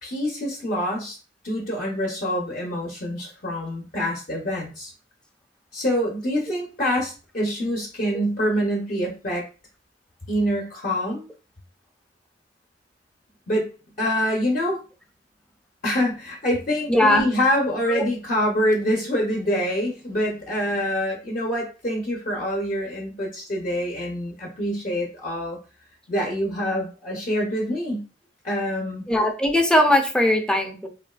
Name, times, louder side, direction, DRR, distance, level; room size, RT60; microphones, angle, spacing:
voice 1, 0.0-1.2 1.4-4.9 5.7-9.4 10.3-11.2 13.5-13.7 14.0-14.8 15.8-25.6 26.1-28.0 28.4-29.1, equal, 50° left, -2 dB, 0.6 m, -25 dB
voice 2, 16.9-17.3 17.6-18.0 29.1-30.9, left 1 dB, 5° left, 4 dB, 0.4 m, -20 dB
3.0 x 2.4 x 2.3 m, 0.34 s
head